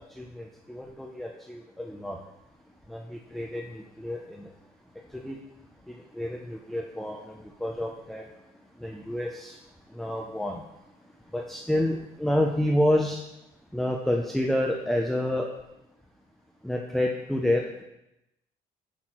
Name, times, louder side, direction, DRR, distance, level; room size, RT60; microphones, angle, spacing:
voice 1, 0.1-2.2 2.9-4.5 5.1-5.4 5.9-8.3 8.8-9.6 9.9-10.6 11.3-13.2 13.7-15.5 16.6-17.8, left 1 dB, ahead, 1 dB, 0.5 m, -29 dB
5.8 x 4.2 x 4.4 m, 0.89 s
cardioid pair, 110°, 17 cm